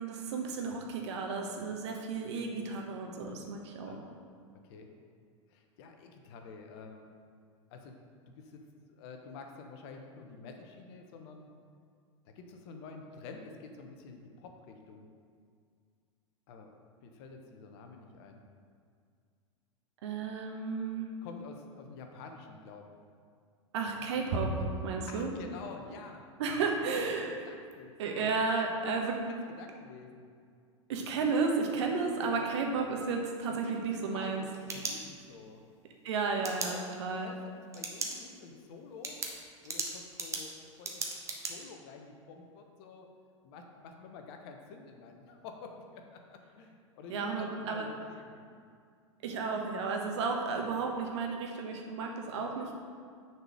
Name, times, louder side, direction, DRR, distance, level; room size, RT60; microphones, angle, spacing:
voice 1, 0.0-4.0 20.0-21.1 23.7-25.3 26.4-27.4 28.0-29.2 30.9-34.4 36.0-37.3 47.1-47.9 49.2-52.7, right 4 dB, 60° right, 2 dB, 1.2 m, -33 dB
voice 2, 5.5-7.1 7.7-8.0 8.3-11.5 12.3-15.1 16.5-16.7 17.0-18.4 21.2-22.9 25.1-26.2 26.6-27.0 27.3-28.0 28.5-28.7 29.2-30.3 32.4-32.5 33.5-33.9 34.1-35.6 36.4-36.8 37.1-39.2 39.6-41.1 41.4-43.1 43.4-48.4, left 4 dB, 50° left, 4 dB, 1.0 m, -49 dB
sound 1, 34.3-35.5 36.4-36.7 37.7-38.2 38.5-38.6 39.0-41.5, right 3 dB, 20° right, 1.1 m, -37 dB
6.6 x 4.4 x 6.3 m, 2.2 s
figure-of-eight pair, 90°, 16 cm